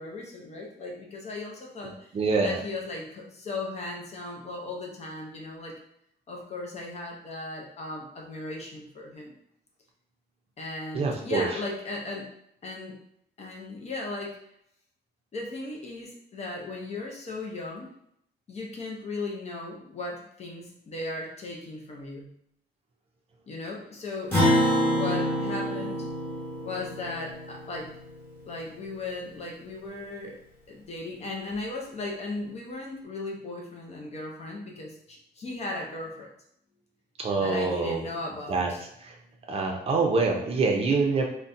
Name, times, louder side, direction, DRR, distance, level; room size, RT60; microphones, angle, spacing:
voice 1, 0.0-2.1 2.4-5.8 6.3-9.3 10.6-12.3 12.6-13.0 13.4-14.4 15.3-17.9 18.5-22.3 23.5-24.3 24.9-26.1 26.6-27.9 28.4-30.4 30.7-36.3 37.4-38.8, left 2 dB, 40° left, 0 dB, 0.5 m, -36 dB
voice 2, 2.1-2.6 10.9-11.5 37.2-38.0 38.5-38.7 39.0-39.2 39.5-41.3, right 4 dB, 35° right, 1 dB, 0.5 m, -25 dB
Acoustic guitar, 24.3-29.0, equal, 10° left, 1.1 m, -27 dB
3.9 x 2.1 x 2.5 m, 0.73 s
wide cardioid pair, 175°, 18 cm